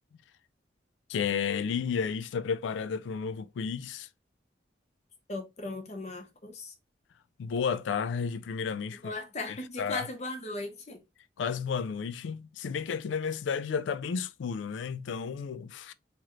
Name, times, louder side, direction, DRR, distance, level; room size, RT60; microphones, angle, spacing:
voice 1, 1.1-4.1 7.4-9.1 9.5-10.1 11.4-15.9, left 6 dB, 90° left, 0.3 m, -32 dB
voice 2, 5.3-6.7 9.0-11.0, left 2 dB, 40° left, 0.7 m, -37 dB
3.1 x 2.9 x 2.4 m
head